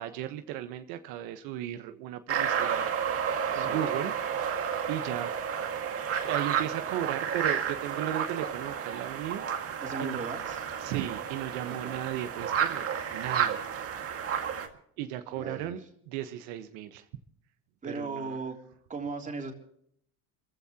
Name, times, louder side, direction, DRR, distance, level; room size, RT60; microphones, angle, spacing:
voice 1, 0.0-2.9 3.5-4.1 4.9-5.3 6.2-9.4 10.0-10.2 10.8-13.7 15.0-17.0 17.8-18.4, right 12 dB, 75° right, 8 dB, 1.3 m, -35 dB
sound 1, 2.3-14.7, right 8 dB, 40° right, 2.0 m, -31 dB
voice 2, 3.5-3.9 9.8-10.6 11.8-12.0 15.3-15.9 17.8-18.6 18.9-19.5, right 3 dB, 20° right, 2 dB, 3.4 m, -37 dB
28.5 x 15.5 x 3.0 m, 0.69 s
cardioid pair, 140°, 37 cm